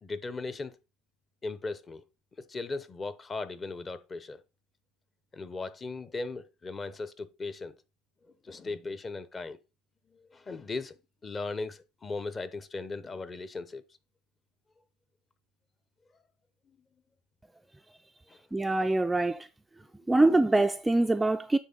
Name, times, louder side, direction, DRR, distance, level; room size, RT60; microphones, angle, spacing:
voice 1, 0.0-0.7 1.4-2.0 2.5-4.4 5.3-7.7 8.4-9.6 10.1-13.8 18.3-18.4, left 3 dB, 25° left, 0.7 m, -37 dB
voice 2, 18.5-19.5 20.1-21.6, right 2 dB, 10° right, 0.4 m, -24 dB
9.1 x 3.6 x 3.9 m
supercardioid pair, 105°, 0 cm